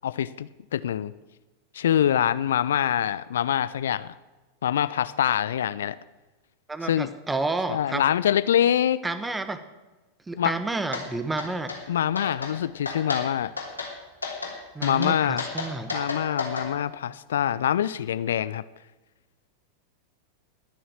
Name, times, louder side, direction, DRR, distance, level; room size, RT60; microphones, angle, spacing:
voice 1, 0.0-1.1 1.7-4.1 4.6-6.0 6.8-7.1 7.7-9.0 10.4-10.5 11.9-13.5 14.8-15.4 15.9-18.6, left 10 dB, 60° left, 16 dB, 0.4 m, -25 dB
voice 2, 6.7-8.0 9.0-9.6 10.3-11.7 14.7-16.1, right 2 dB, 10° right, 11 dB, 1.2 m, -30 dB
sound 1, 10.9-11.0 11.4-11.8 12.1-12.5 12.8-13.2 13.6-13.9 14.2-14.5 14.8-16.7, left 4 dB, 80° left, 3.1 m, -32 dB
20.5 x 7.0 x 7.4 m, 1.2 s
figure-of-eight pair, 90°, 0 cm